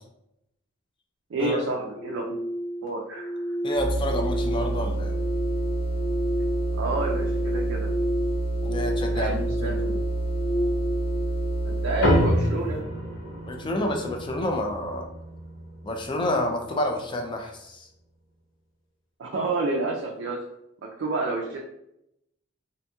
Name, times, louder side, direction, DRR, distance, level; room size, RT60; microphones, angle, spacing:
voice 1, 1.3-2.4 2.8-3.4 6.7-7.9 9.1-10.0 11.6-12.9 19.2-20.4 21.0-21.6, right 3 dB, 80° right, -1 dB, 0.4 m, -29 dB
sound 1, 1.9-12.9, equal, 30° right, 0.6 m, -32 dB
voice 2, 3.6-5.1 8.6-9.7 13.5-15.1 15.8-17.9, left 1 dB, 25° left, 4 dB, 0.3 m, -29 dB
sound 2, 3.7-12.4, right 2 dB, 55° left, 1.1 m, -28 dB
sound 3, 12.0-16.8, equal, 85° left, 0.6 m, -28 dB
2.8 x 2.5 x 2.2 m, 0.82 s
head